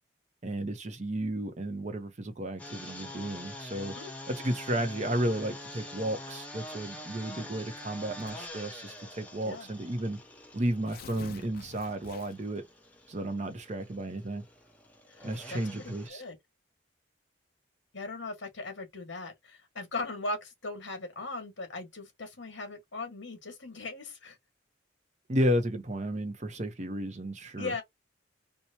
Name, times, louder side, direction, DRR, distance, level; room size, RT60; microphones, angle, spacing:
voice 1, 0.4-3.9 4.3-10.2 10.5-12.6 13.1-14.4 15.2-16.2 25.3-27.7, right 1 dB, 35° right, 0.7 m, -33 dB
sound 1, 2.6-16.1, left 1 dB, 5° left, 0.9 m, -46 dB
Tearing, 8.2-8.6 9.5-9.6 9.9-10.0 10.6-12.6, left 5 dB, 50° left, 0.4 m, -48 dB
voice 2, 15.1-16.3 17.9-24.4 27.6-27.8, left 3 dB, 70° left, 1.5 m, -39 dB
4.4 x 2.2 x 2.7 m
head